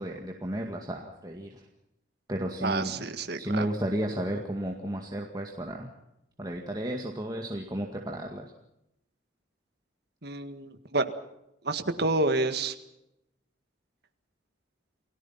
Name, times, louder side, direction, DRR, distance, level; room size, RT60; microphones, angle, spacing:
voice 1, 0.0-1.7 2.3-3.1 3.4-5.9 6.4-8.5, right 1 dB, 20° right, 1 dB, 2.0 m, -33 dB
voice 2, 2.6-3.7 10.2-11.1 11.6-12.7, right 2 dB, 50° right, 8 dB, 1.8 m, -29 dB
29.0 x 18.0 x 5.8 m, 0.85 s
head